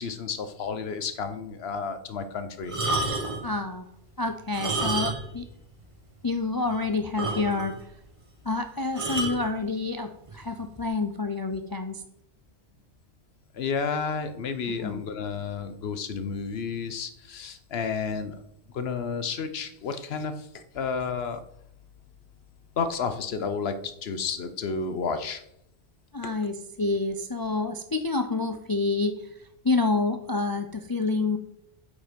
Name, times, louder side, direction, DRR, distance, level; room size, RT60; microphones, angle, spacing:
voice 1, 0.0-2.8 13.5-18.4 18.7-21.4 22.8-25.4, left 5 dB, 70° left, 10 dB, 1.1 m, -31 dB
sound 1, 2.6-3.5 4.4-5.4 5.7-5.8 6.3-6.4 6.7-6.8 7.2-7.8 9.0-9.4 10.3-10.5, right 2 dB, 30° right, 1.4 m, -29 dB
voice 2, 3.4-3.9 4.2-5.5 6.2-7.7 8.5-12.0 14.8-15.0 26.1-29.3 29.6-31.4, left 3 dB, 30° left, 7 dB, 0.4 m, -28 dB
8.3 x 5.3 x 5.1 m, 0.76 s
omnidirectional pair, 1.1 m